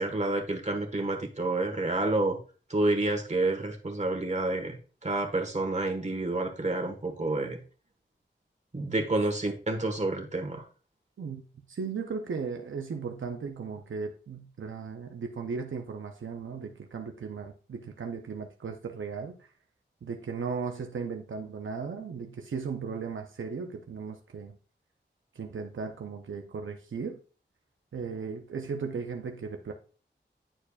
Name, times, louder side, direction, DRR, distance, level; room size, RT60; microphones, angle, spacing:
voice 1, 0.0-2.4 2.7-4.8 5.0-7.6 8.7-10.6, right 2 dB, 35° right, 3 dB, 1.4 m, -29 dB
voice 2, 11.7-19.5 20.0-24.6 25.4-27.2 27.9-29.7, right 5 dB, 85° right, 3 dB, 0.6 m, -36 dB
10.0 x 4.5 x 2.4 m, 0.38 s
wide cardioid pair, 75°, 20 cm